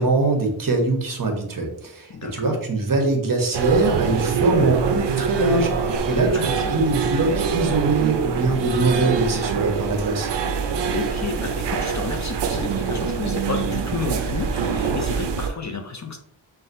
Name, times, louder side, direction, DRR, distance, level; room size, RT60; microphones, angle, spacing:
voice 1, 0.0-6.4 6.7-10.3, right 3 dB, 45° right, 3 dB, 0.9 m, -23 dB
voice 2, 2.1-2.6 6.3-7.0 10.9-16.2, left 4 dB, 40° left, 3 dB, 0.5 m, -31 dB
sound 1, 3.5-15.5, right 6 dB, 65° right, 0.5 m, -24 dB
5.7 x 2.6 x 2.6 m, 0.72 s
wide cardioid pair, 100°, 47 cm